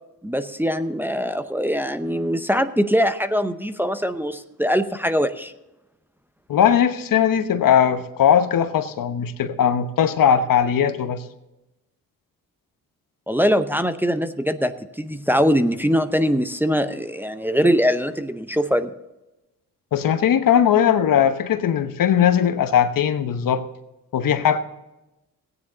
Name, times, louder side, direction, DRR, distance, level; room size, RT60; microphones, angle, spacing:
voice 1, 0.2-5.5 13.3-18.9, equal, 5° right, 8 dB, 0.7 m, -22 dB
voice 2, 6.5-11.2 19.9-23.7 24.1-24.6, left 9 dB, 70° left, 10 dB, 1.0 m, -19 dB
15.5 x 9.7 x 3.9 m, 0.98 s
cardioid pair, 65°, 35 cm